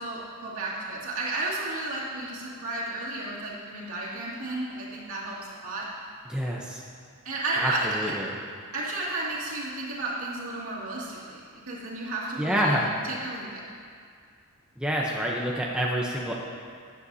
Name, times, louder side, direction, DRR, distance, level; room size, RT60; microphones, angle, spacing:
voice 1, 0.0-5.9 7.2-8.1 8.7-11.4 11.7-12.8 13.1-13.6, right 2 dB, 65° right, -6 dB, 2.4 m, -32 dB
voice 2, 6.3-6.8 7.6-8.3 12.4-12.9 14.8-16.3, equal, 5° right, -3 dB, 0.7 m, -27 dB
13.0 x 9.9 x 2.8 m, 2.2 s
head